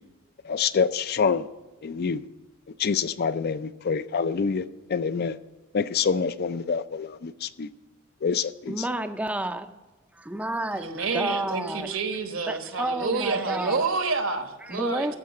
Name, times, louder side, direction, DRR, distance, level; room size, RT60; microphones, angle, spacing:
voice 1, 0.4-1.5 1.8-2.3 2.8-5.4 5.7-7.7 8.2-8.8, left 5 dB, 50° left, 14 dB, 0.4 m, -26 dB
voice 2, 8.7-9.7 10.1-12.0 12.5-13.8 14.6-15.1, right 1 dB, 5° right, 9 dB, 0.5 m, -30 dB
voice 3, 10.7-15.2, right 4 dB, 70° right, 7 dB, 1.2 m, -28 dB
14.0 x 5.8 x 7.1 m, 1.1 s
head